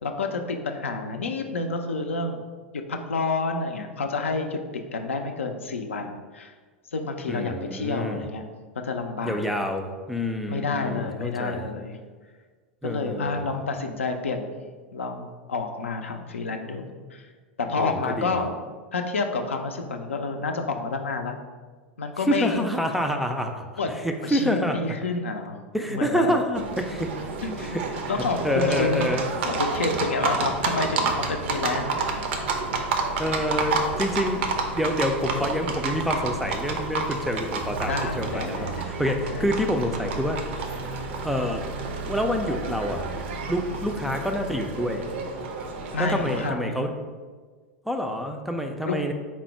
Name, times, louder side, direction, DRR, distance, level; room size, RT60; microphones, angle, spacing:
voice 1, 0.0-2.4 2.9-4.6 4.9-6.5 6.9-8.5 8.8-9.4 10.5-12.0 12.8-14.5 14.9-17.3 17.6-18.6 18.9-21.4 22.0-22.7 23.8-23.9 24.2-25.6 25.9-26.4 27.4-27.8 28.1-29.1 29.4-32.0 37.9-38.9 39.3-39.4 43.8-44.0 45.9-47.0 48.8-49.0, left 3 dB, 80° left, 5 dB, 0.4 m, -29 dB
voice 2, 7.3-8.2 9.2-11.7 12.8-13.5 17.8-18.4 22.3-23.7 24.0-24.8 25.7-27.1 27.6-27.8 28.4-29.3 33.2-34.5 34.7-40.4 41.2-41.6 42.1-43.1 43.5-45.1 46.0-46.9 47.9-49.1, equal, ahead, 4 dB, 0.3 m, -27 dB
Livestock farm animals working animals, 26.5-46.5, right 4 dB, 60° right, 0.5 m, -30 dB
4.3 x 2.0 x 4.5 m, 1.5 s
figure-of-eight pair, 95°, 7 cm